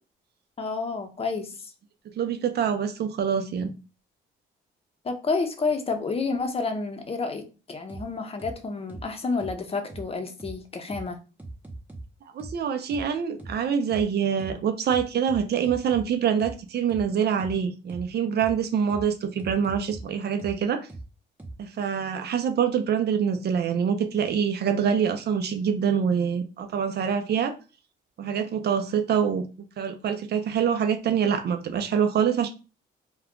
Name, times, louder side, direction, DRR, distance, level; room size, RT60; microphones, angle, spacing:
voice 1, 0.6-1.7 5.0-11.2, left 4 dB, 30° left, 0.7 m, -30 dB
voice 2, 2.2-3.7 12.3-20.8 21.6-27.5 28.2-29.5 29.8-32.5, right 7 dB, 55° right, 0.6 m, -25 dB
sound 1, 7.9-8.0 8.4-8.5 8.9-9.0 9.4-9.5 9.9-10.0 10.4-10.5 10.9-11.0 11.4-12.0 12.4-12.5 12.9-13.0 13.4-13.5 13.9-14.0 14.4-14.5 14.9-16.0 16.4-16.5 16.9-17.0 17.4-17.5 17.9-18.0 18.4-18.5 18.9-19.0 19.4-20.0 20.4-20.5 20.9-21.0 21.4-21.5, right 2 dB, 10° right, 0.8 m, -39 dB
2.4 x 2.2 x 3.6 m
cardioid pair, 90°, 20 cm